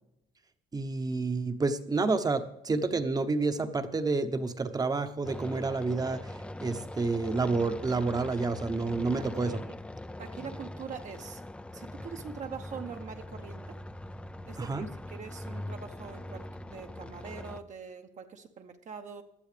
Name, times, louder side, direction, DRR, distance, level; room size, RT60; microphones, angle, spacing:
voice 1, 0.7-6.2 6.6-9.6 14.6-14.9, right 3 dB, 20° right, 10 dB, 1.0 m, -29 dB
sound 1, 5.2-17.6, left 1 dB, 5° left, 0.5 m, -42 dB
voice 2, 9.2-9.7 10.2-11.4 11.7-13.8 14.5-19.2, right 6 dB, 45° right, 4 dB, 1.0 m, -43 dB
18.5 x 11.5 x 3.4 m, 0.85 s
cardioid pair, 110°, 17 cm